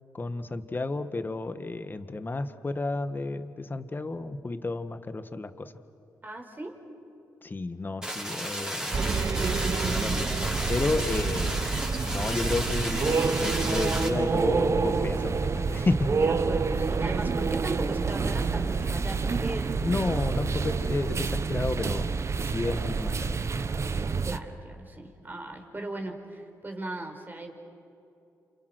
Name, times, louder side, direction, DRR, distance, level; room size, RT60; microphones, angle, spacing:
voice 1, 0.1-5.7 7.4-10.3 10.7-11.7 12.1-16.1 19.8-22.1 22.4-23.3, left 3 dB, 30° left, 10 dB, 1.7 m, -32 dB
voice 2, 6.2-6.8 8.9-9.3 16.0-19.7 20.1-20.3 24.2-27.5, right 2 dB, 25° right, 4 dB, 5.1 m, -38 dB
sound 1, 8.0-14.1, right 1 dB, 10° right, 6.3 m, -33 dB
sound 2, 8.9-24.4, right 4 dB, 45° right, 1.1 m, -28 dB
29.5 x 28.5 x 6.4 m, 2.7 s
supercardioid pair, 55°, 7 cm